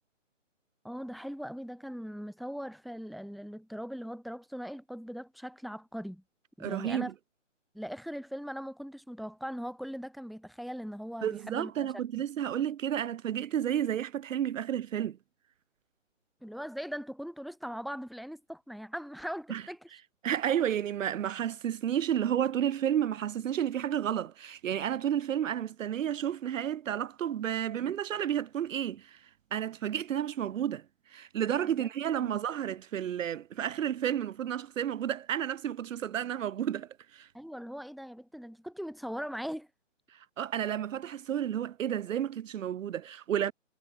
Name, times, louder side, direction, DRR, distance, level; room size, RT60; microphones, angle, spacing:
voice 1, 0.8-6.2 6.6-7.1 7.7-11.7 12.1-12.2 16.4-19.9 31.6-31.9 32.2-32.4 37.3-39.7, equal, ahead, 1.9 m, -40 dB
voice 2, 6.6-7.1 11.2-15.2 19.5-19.6 20.2-29.2 29.5-30.8 31.1-37.3 40.1-43.5, right 10 dB, 80° right, 0.6 m, -31 dB
hypercardioid pair, 165°, 38 cm